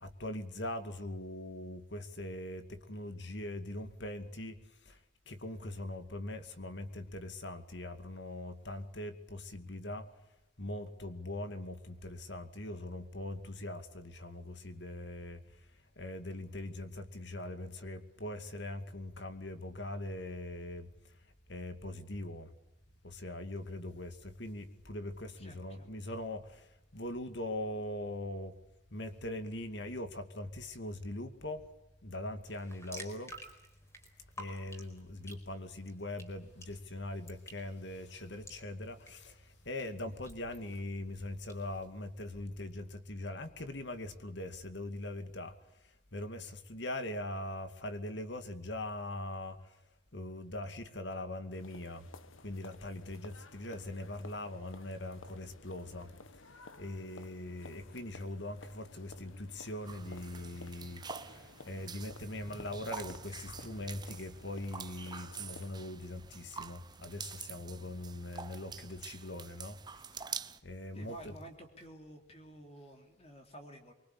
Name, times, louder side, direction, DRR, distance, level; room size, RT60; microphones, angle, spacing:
voice 1, 0.0-4.5 5.3-10.0 10.6-15.4 16.0-20.9 21.5-22.5 23.0-26.4 26.9-28.5 28.9-31.6 32.0-33.3 34.4-39.3 39.7-45.5 46.1-49.6 50.1-52.0 52.4-56.1 56.8-61.0 61.6-69.7 70.6-71.3, left 1 dB, 60° left, 8 dB, 2.4 m, -41 dB
voice 2, 25.4-25.9 70.9-73.9, right 1 dB, 30° left, 4 dB, 3.4 m, -51 dB
sound 1, 32.4-41.6, equal, 15° left, 4.7 m, -54 dB
sound 2, 51.5-65.7, left 3 dB, 85° left, 1.6 m, -54 dB
sound 3, 59.9-70.6, right 5 dB, 20° right, 0.9 m, -46 dB
24.5 x 24.5 x 8.7 m, 0.91 s
head